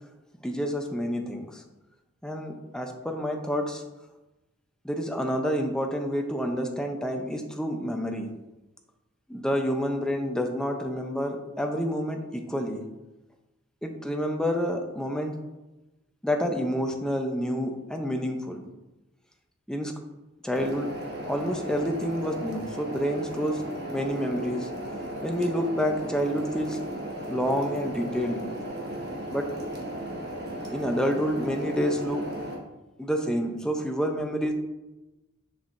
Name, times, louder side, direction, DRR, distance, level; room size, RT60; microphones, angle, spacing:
voice 1, 0.4-1.6 2.2-3.8 4.8-8.3 9.3-12.8 13.8-15.4 16.2-18.6 19.7-19.9 20.4-20.9 21.3-24.7 25.2-26.8 27.3-28.4 29.3-29.5 30.7-32.3 33.0-34.5, equal, 5° left, 3 dB, 0.6 m, -28 dB
sound 1, 20.5-32.5, right 1 dB, 50° right, 1.4 m, -36 dB
6.8 x 6.3 x 2.6 m, 1.0 s
head